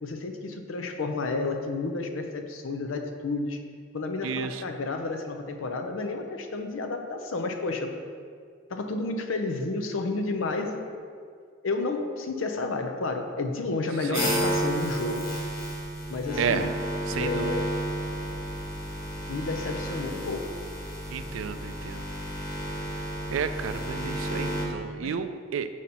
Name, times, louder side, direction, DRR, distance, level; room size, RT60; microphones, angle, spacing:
voice 1, 0.0-3.6 3.9-7.9 8.7-10.8 11.6-15.3 16.1-16.7 17.2-17.7 19.3-20.5 25.0-25.2, left 3 dB, 80° left, 5 dB, 0.6 m, -31 dB
voice 2, 4.2-4.6 14.1-14.4 16.4-16.7 17.1-17.6 21.1-22.0 23.3-25.7, right 7 dB, 75° right, 10 dB, 0.3 m, -31 dB
sound 1, 14.1-24.7, equal, 50° left, 1.2 m, -32 dB
4.9 x 4.1 x 5.6 m, 2.1 s
head